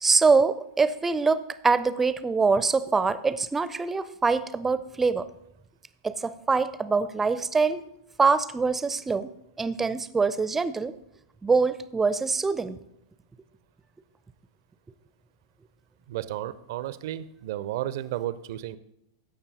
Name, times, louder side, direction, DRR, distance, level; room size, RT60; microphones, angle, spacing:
voice 1, 0.0-5.3 6.0-7.8 8.2-9.3 9.6-10.9 11.4-12.8, right 4 dB, 10° right, 14 dB, 0.5 m, -24 dB
voice 2, 16.1-18.8, right 13 dB, 55° right, 15 dB, 0.5 m, -33 dB
14.5 x 5.6 x 4.1 m, 0.80 s
figure-of-eight pair, 100°, 2 cm